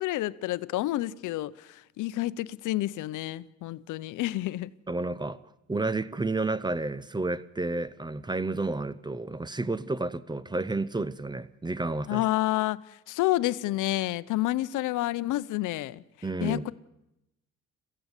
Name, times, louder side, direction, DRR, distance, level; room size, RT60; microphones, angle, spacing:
voice 1, 0.0-4.7 12.1-16.0 16.4-16.7, left 16 dB, 85° left, 0.7 m, -29 dB
voice 2, 4.9-12.2 16.2-16.6, right 2 dB, 15° right, 0.7 m, -31 dB
22.5 x 15.5 x 8.2 m
cardioid pair, 90°, 30 cm